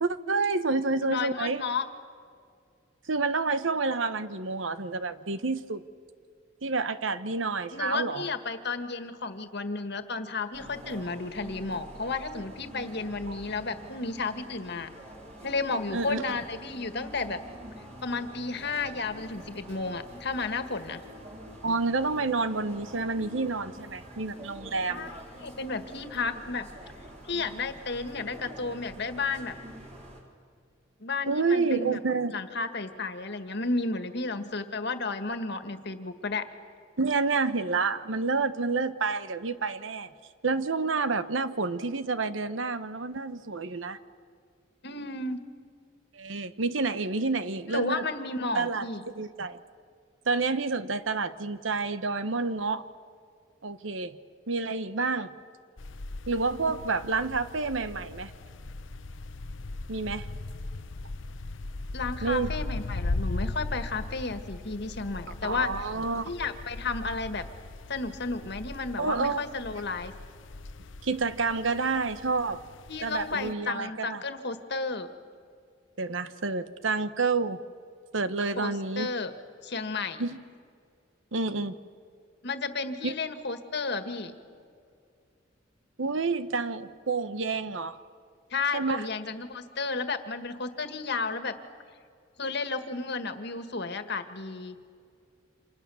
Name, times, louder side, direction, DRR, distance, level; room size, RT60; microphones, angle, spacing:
voice 1, 0.0-1.6 3.1-5.8 6.6-8.2 13.3-13.4 15.9-16.2 21.6-25.1 31.3-32.4 37.0-40.1 40.4-44.0 46.1-48.1 48.5-48.8 49.1-49.6 50.3-52.8 53.6-54.2 54.5-55.3 56.3-58.3 59.9-60.3 62.2-62.6 65.4-66.2 69.0-69.4 71.0-72.6 73.0-74.2 76.0-77.6 78.1-79.1 80.2-80.4 81.3-81.8 83.0-83.1 86.0-88.0 88.7-89.0, right 4 dB, 90° right, 12 dB, 1.1 m, -29 dB
voice 2, 1.0-1.9 7.7-14.9 15.4-17.4 18.0-21.0 24.9-26.7 27.3-29.5 31.0-32.0 32.3-36.4 44.8-45.4 47.7-49.0 61.9-65.7 66.2-67.4 67.9-70.1 72.9-75.1 78.6-79.3 79.6-80.3 82.4-84.3 88.5-91.5 92.4-94.8, left 3 dB, 60° left, 9 dB, 1.8 m, -32 dB
sound 1, 10.5-30.2, equal, 35° right, 4.9 m, -46 dB
sound 2, 55.8-73.5, left 2 dB, 80° left, 0.8 m, -38 dB
29.0 x 27.0 x 7.1 m, 2.3 s
head